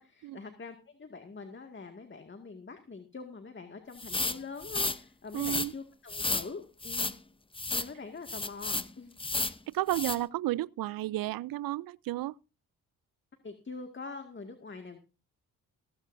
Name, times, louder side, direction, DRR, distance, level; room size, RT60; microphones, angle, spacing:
voice 1, 0.0-7.1 7.7-9.2 13.4-15.0, left 4 dB, 30° left, 2.1 m, -44 dB
sound 1, 4.0-5.0 5.3-5.7 6.1-6.5 6.8-7.2 7.5-7.9 8.3-8.9 9.2-9.6 9.9-10.2, left 3 dB, 15° left, 0.8 m, -32 dB
voice 2, 5.3-5.7 9.7-12.3, right 16 dB, 65° right, 0.6 m, -32 dB
15.5 x 15.5 x 2.7 m
supercardioid pair, 60°, 38 cm